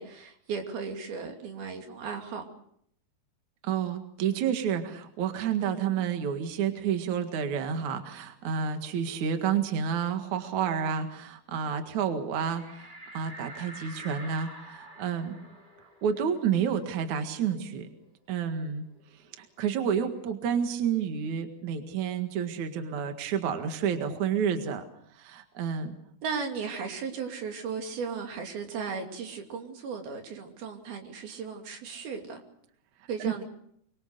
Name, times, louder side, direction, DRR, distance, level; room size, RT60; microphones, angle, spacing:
voice 1, 0.0-2.4 5.6-6.0 26.2-32.4 33.1-33.4, right 5 dB, 80° right, 4 dB, 4.7 m, -36 dB
voice 2, 3.6-15.4 16.0-17.9 18.3-18.8 19.4-24.8 25.2-26.0 33.2-33.3, right 7 dB, 55° right, 7 dB, 3.0 m, -30 dB
sound 1, 12.5-17.7 18.0-18.1 18.4-20.1, right 1 dB, 15° right, 3.0 m, -48 dB
24.5 x 23.5 x 6.7 m, 0.68 s
omnidirectional pair, 4.2 m